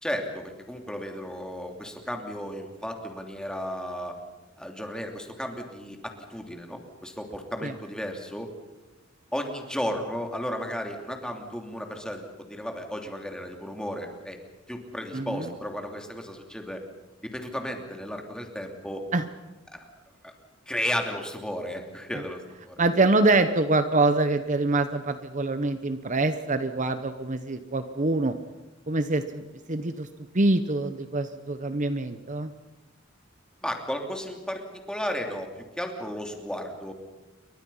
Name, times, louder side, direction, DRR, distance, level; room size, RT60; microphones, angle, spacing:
voice 1, 0.0-4.2 4.6-8.5 9.3-14.4 14.7-16.8 17.2-19.1 19.7-19.8 20.2-20.3 20.7-22.8 33.6-35.5 35.8-36.9, equal, 5° left, 3 dB, 3.0 m, -34 dB
voice 2, 15.1-15.5 19.1-19.2 22.8-28.4 28.9-29.4 29.7-30.1 30.3-32.5, right 2 dB, 40° right, 10 dB, 1.0 m, -25 dB
29.0 x 23.5 x 5.6 m, 1.1 s
head